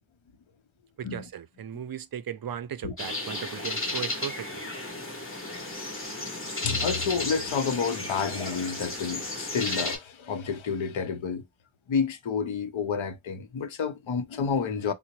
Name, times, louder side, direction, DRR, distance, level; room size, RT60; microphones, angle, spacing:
voice 1, 1.0-4.6, right 9 dB, 50° right, 0.5 m, -37 dB
sound 1, 3.0-10.0, left 2 dB, 25° left, 1.3 m, -33 dB
voice 2, 6.6-11.4 11.9-14.9, left 6 dB, 80° left, 0.7 m, -29 dB
3.7 x 2.1 x 2.9 m
wide cardioid pair, 105°, 46 cm